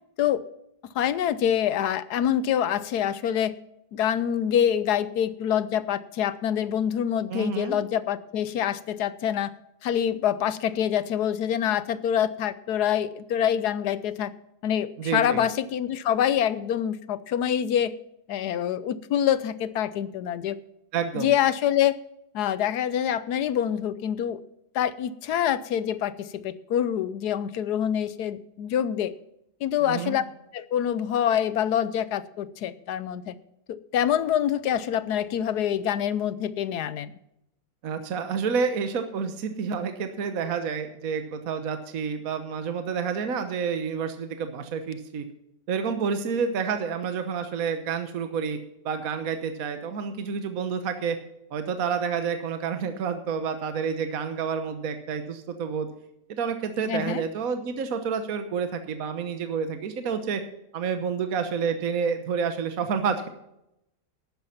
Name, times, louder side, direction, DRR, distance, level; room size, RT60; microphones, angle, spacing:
voice 1, 0.9-3.5 3.9-9.5 9.8-14.3 14.6-17.9 18.3-20.5 21.1-22.0 22.3-24.4 24.7-29.1 29.6-30.2 30.5-33.3 33.7-37.1 56.9-57.2, left 9 dB, 75° left, 15 dB, 1.2 m, -26 dB
voice 2, 7.3-7.8 15.0-15.4 20.9-21.3 29.9-30.2 37.8-45.2 45.7-48.6 48.8-51.2 51.5-55.9 56.3-60.4 60.7-63.3, right 6 dB, 60° right, 8 dB, 1.5 m, -29 dB
12.0 x 9.6 x 5.7 m, 0.82 s
omnidirectional pair, 1.7 m